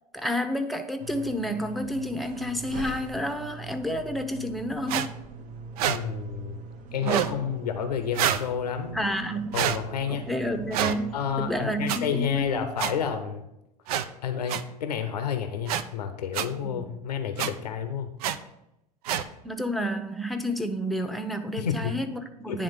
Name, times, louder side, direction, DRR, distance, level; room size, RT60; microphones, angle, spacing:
voice 1, 0.1-5.1 8.9-9.5 10.1-12.7 16.6-16.8 19.4-22.6, equal, ahead, 6 dB, 0.8 m, -30 dB
sound 1, 1.0-13.2, right 3 dB, 40° right, 0.9 m, -42 dB
sound 2, 4.9-5.1 5.8-6.0 7.0-7.3 8.1-8.4 9.5-9.8 10.7-11.0 11.9-12.0 12.8-12.9 13.9-14.1 14.5-14.6 15.7-15.8 16.3-16.5 17.4-17.5 18.2-18.4 19.1-19.2, right 9 dB, 70° right, 0.5 m, -26 dB
voice 2, 5.9-6.6 6.9-9.0 9.5-10.3 11.1-13.4 14.2-18.1 21.6-21.9 22.5-22.6, left 7 dB, 85° left, 8 dB, 0.7 m, -30 dB
9.8 x 3.5 x 5.2 m, 0.86 s
hypercardioid pair, 85°, 20 cm